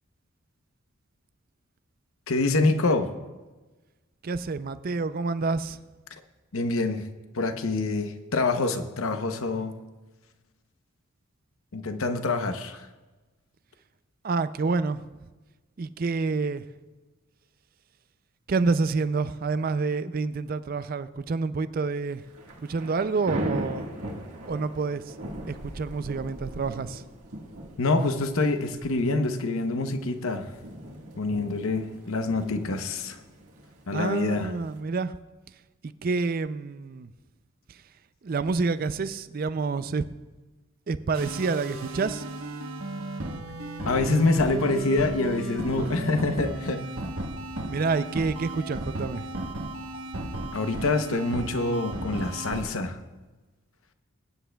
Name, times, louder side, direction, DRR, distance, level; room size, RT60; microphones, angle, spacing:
voice 1, 2.3-3.1 6.5-7.0 7.3-9.7 11.7-12.9 27.8-30.5 31.2-33.2 33.9-34.5 43.8-46.8 50.5-53.0, left 2 dB, 70° left, 8 dB, 0.8 m, -26 dB
voice 2, 4.2-5.8 14.2-15.1 15.8-16.7 18.5-22.2 22.6-23.9 24.5-25.1 25.5-27.0 33.9-35.1 35.8-37.1 37.7-37.8 38.2-40.0 40.9-42.2 47.7-49.3, right 4 dB, 40° right, 14 dB, 0.4 m, -28 dB
Thunder / Rain, 22.1-34.8, right 1 dB, 90° right, 1.6 m, -39 dB
sound 1, 41.1-52.6, right 1 dB, 70° right, 1.1 m, -35 dB
21.0 x 10.0 x 2.3 m, 1.2 s
head